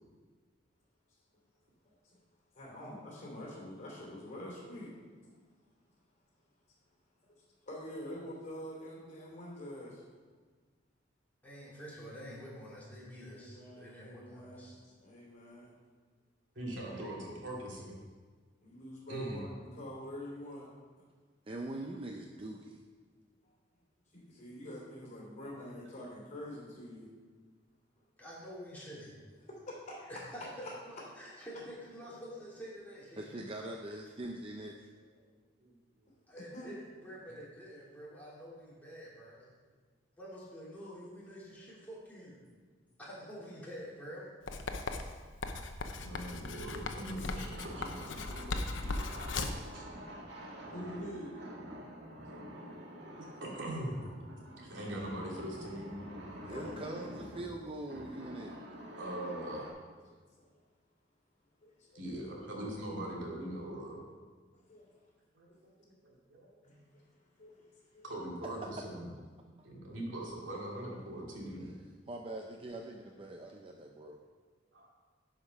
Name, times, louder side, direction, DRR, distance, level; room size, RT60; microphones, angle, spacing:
voice 1, 2.5-4.9 7.2-7.3 7.6-10.0 13.3-15.7 18.6-20.7 24.1-27.1 29.5-30.1 30.6-30.7 31.2-31.3 36.1-36.2 36.5-36.7 50.7-51.4 52.7-52.8 56.5-57.2 60.4-60.5 61.6-62.0 64.5-64.9 66.6-67.0 67.4-67.5 67.9-68.0, left 1 dB, 40° left, -3 dB, 3.0 m, -46 dB
voice 2, 11.4-14.8 28.2-29.1 30.1-33.4 36.3-39.5 40.2-42.4 43.0-44.3, equal, 10° left, -7 dB, 2.8 m, -48 dB
voice 3, 16.6-18.0 19.1-19.4 35.2-35.3 35.6-35.8 46.0-48.2 49.7-49.8 53.2-54.1 54.6-56.0 59.0-59.8 61.9-64.1 66.3-66.6 68.0-69.1 69.6-71.7 74.7-74.9, right 1 dB, 85° right, -3 dB, 2.4 m, -41 dB
voice 4, 21.5-22.8 33.2-34.9 56.4-58.5 71.6-71.7 72.1-74.2, right 1 dB, 30° right, 2 dB, 0.5 m, -43 dB
Writing, 44.5-49.7, left 3 dB, 80° left, 0.7 m, -38 dB
sound 1, 47.5-59.7, equal, 65° right, 1.7 m, -47 dB
11.0 x 5.2 x 5.4 m, 1.5 s
head